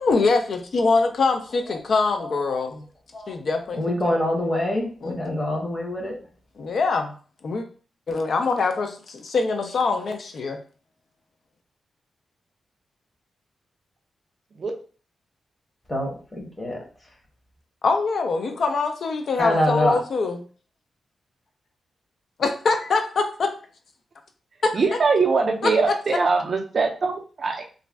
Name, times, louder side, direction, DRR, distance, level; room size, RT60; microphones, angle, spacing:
voice 1, 0.0-2.9 3.3-4.2 5.0-5.2 6.6-7.1 7.4-7.7 8.1-10.6 17.8-20.4 22.4-23.5 24.6-24.8 25.6-26.0, left 4 dB, 55° left, 6 dB, 0.3 m, -24 dB
voice 2, 2.2-2.6 3.1-3.3 3.7-6.1 15.9-16.8 19.4-20.0, left 1 dB, 20° left, -1 dB, 0.8 m, -25 dB
voice 3, 24.7-27.6, right 4 dB, 40° right, 3 dB, 0.4 m, -22 dB
2.4 x 2.1 x 3.2 m, 0.38 s
wide cardioid pair, 170°, 0 cm